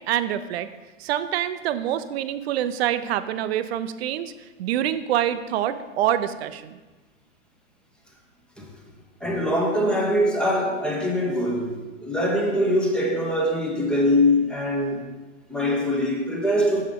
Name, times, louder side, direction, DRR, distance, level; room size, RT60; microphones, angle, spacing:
voice 1, 0.1-0.7 1.0-4.3 4.6-6.8, right 11 dB, 55° right, 0.4 m, -26 dB
voice 2, 9.2-15.0 15.5-16.8, left 1 dB, ahead, 0.7 m, -23 dB
6.2 x 5.7 x 3.6 m
hypercardioid pair, 120°, 40 cm